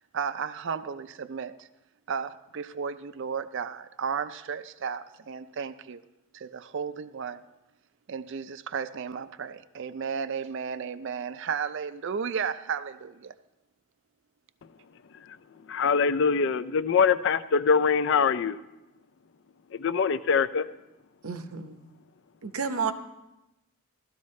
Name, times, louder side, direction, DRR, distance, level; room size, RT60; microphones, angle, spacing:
voice 1, 0.1-1.7 2.1-6.0 6.3-7.4 8.1-13.3, right 6 dB, 55° right, 0.4 m, -34 dB
voice 2, 15.7-18.6 19.7-20.6, left 5 dB, 55° left, 0.4 m, -23 dB
voice 3, 21.2-21.8 22.4-22.9, right 5 dB, 75° right, 0.8 m, -31 dB
16.0 x 13.0 x 3.2 m
head